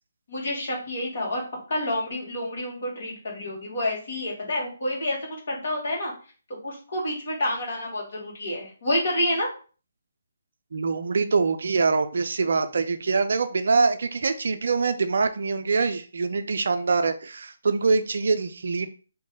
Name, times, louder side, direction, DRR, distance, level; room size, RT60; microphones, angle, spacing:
voice 1, 0.3-1.4 1.7-5.2 5.5-6.1 6.6-9.5, left 1 dB, 55° left, -2 dB, 1.7 m, -28 dB
voice 2, 10.7-18.9, right 4 dB, 60° right, 9 dB, 0.4 m, -24 dB
3.0 x 2.7 x 3.7 m, 0.38 s
figure-of-eight pair, 145°, 0 cm